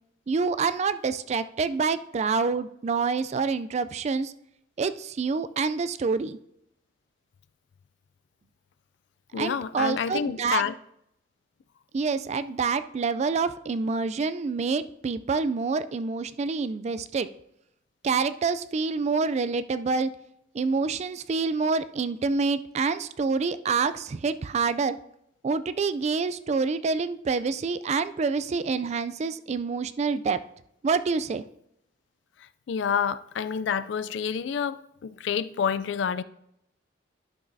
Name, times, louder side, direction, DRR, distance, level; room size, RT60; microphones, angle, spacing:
voice 1, 0.3-4.3 4.8-6.4 9.4-10.6 11.9-17.3 18.0-20.1 20.5-25.0 25.4-30.4 30.8-31.4, right 4 dB, 35° right, 0.3 m, -27 dB
voice 2, 9.3-10.7 32.7-36.2, left 7 dB, 65° left, 0.3 m, -28 dB
11.5 x 6.0 x 2.7 m
head